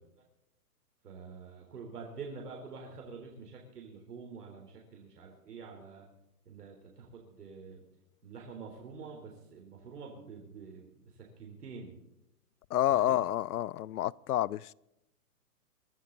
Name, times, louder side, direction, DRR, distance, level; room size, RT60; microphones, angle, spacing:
voice 1, 1.0-6.1 6.5-7.8 8.2-12.0 12.9-13.2, right 5 dB, 85° right, 3.9 m, -47 dB
voice 2, 12.7-14.7, left 13 dB, 75° left, 0.6 m, -29 dB
23.0 x 12.0 x 4.0 m
hypercardioid pair, 160°, 46 cm